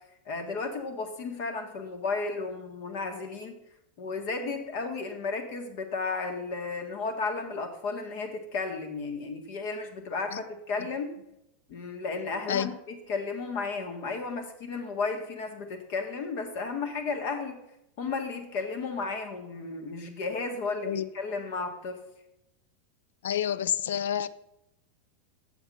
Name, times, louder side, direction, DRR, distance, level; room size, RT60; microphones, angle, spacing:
voice 1, 0.3-3.5 4.0-11.2 11.7-17.6 18.0-22.0, left 4 dB, 60° left, 1.8 m, -33 dB
voice 2, 23.2-24.3, left 9 dB, 85° left, 0.4 m, -28 dB
7.3 x 6.9 x 5.6 m
supercardioid pair, 130°, 0 cm